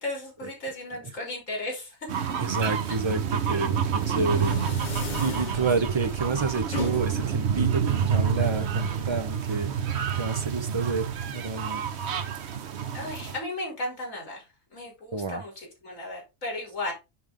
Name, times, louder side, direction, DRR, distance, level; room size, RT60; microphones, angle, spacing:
voice 1, 0.0-2.0 12.9-14.4 14.7-16.9, left 1 dB, 75° left, 3.5 m, -35 dB
sound 1, 2.1-13.4, right 8 dB, 60° right, 1.0 m, -28 dB
voice 2, 2.4-4.6 5.2-9.8 10.1-11.9 15.1-15.4, right 3 dB, 30° right, 0.6 m, -29 dB
sound 2, 3.8-9.6, left 3 dB, 35° left, 1.1 m, -38 dB
10.5 x 3.5 x 3.6 m
omnidirectional pair, 1.4 m